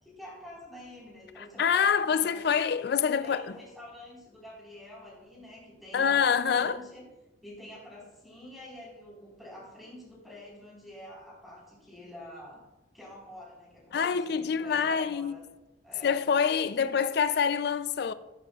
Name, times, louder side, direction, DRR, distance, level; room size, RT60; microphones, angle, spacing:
voice 1, 0.0-2.4 3.2-7.1 7.4-12.6 12.9-15.4 15.8-16.2 16.8-16.9, left 1 dB, ahead, 4.2 m, -47 dB
voice 2, 1.4-3.5 5.9-6.8 13.9-15.3 16.0-18.1, left 7 dB, 55° left, 0.4 m, -26 dB
14.5 x 13.0 x 2.4 m
head